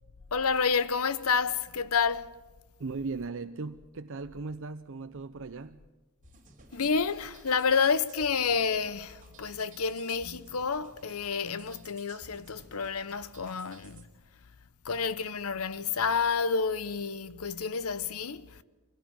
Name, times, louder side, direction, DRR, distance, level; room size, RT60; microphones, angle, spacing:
voice 1, 0.3-2.4 6.7-14.1 14.8-18.6, left 5 dB, 70° left, 0.9 m, -29 dB
voice 2, 2.8-5.8, right 4 dB, 60° right, 0.6 m, -38 dB
sound 1, 6.2-14.0, right 4 dB, 35° right, 3.0 m, -56 dB
23.5 x 16.5 x 9.0 m
head